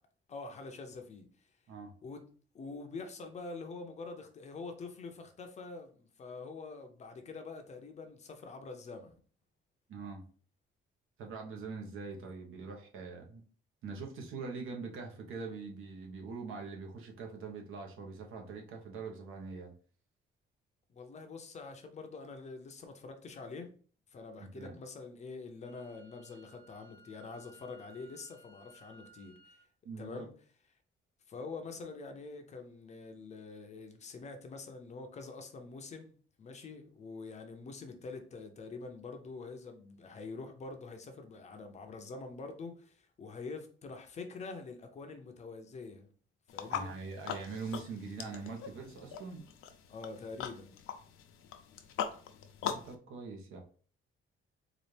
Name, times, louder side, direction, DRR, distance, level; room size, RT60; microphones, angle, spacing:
voice 1, 0.3-1.3 2.0-2.2 2.5-9.2 12.2-12.3 20.9-23.7 24.1-29.4 30.0-30.3 31.3-46.1 46.5-46.9 49.9-50.7, left 4 dB, 35° left, 0.5 m, -45 dB
voice 2, 9.9-10.2 11.2-13.4 13.8-19.7 24.4-24.7 29.8-30.3 46.7-49.4 52.7-53.6, right 4 dB, 75° right, 1.0 m, -43 dB
Wind instrument woodwind instrument, 25.6-29.6, right 2 dB, 30° right, 1.6 m, -60 dB
sound 1, 46.5-52.9, left 8 dB, 85° left, 0.6 m, -41 dB
4.1 x 2.4 x 3.2 m
cardioid pair, 170°, 21 cm